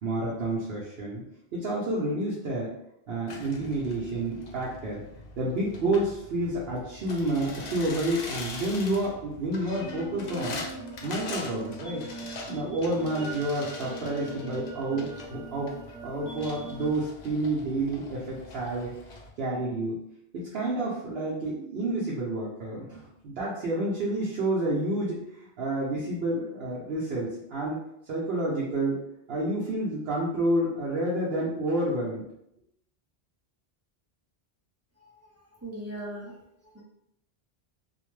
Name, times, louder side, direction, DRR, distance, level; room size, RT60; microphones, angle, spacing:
voice 1, 0.0-1.2 1.5-2.7 3.1-5.0 5.4-10.6 11.0-15.8 16.0-18.9 19.4-20.0 20.3-25.2 25.6-27.8 28.1-29.0 29.3-32.2, right 1 dB, 70° right, -6 dB, 0.9 m, -29 dB
sound 1, 3.3-19.3, left 2 dB, 55° left, 0.5 m, -43 dB
sound 2, 9.7-16.9, right 2 dB, 85° left, 1.0 m, -41 dB
voice 2, 35.6-36.4 36.6-36.8, right 1 dB, 20° right, -5 dB, 0.5 m, -39 dB
2.6 x 2.1 x 3.0 m, 0.77 s
omnidirectional pair, 1.1 m